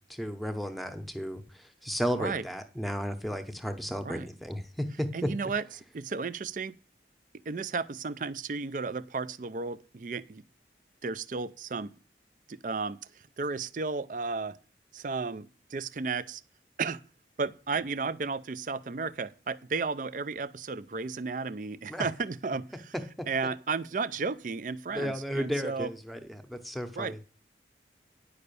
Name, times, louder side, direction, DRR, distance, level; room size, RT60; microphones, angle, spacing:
voice 1, 0.1-5.3 21.9-22.1 23.2-23.3 24.9-27.3, equal, ahead, 0.8 m, -34 dB
voice 2, 5.1-6.8 7.5-10.4 11.0-11.9 12.5-14.6 14.9-16.4 16.8-17.0 17.4-22.9 23.3-25.9 27.0-27.2, right 4 dB, 45° right, 0.4 m, -33 dB
9.7 x 5.6 x 6.8 m
head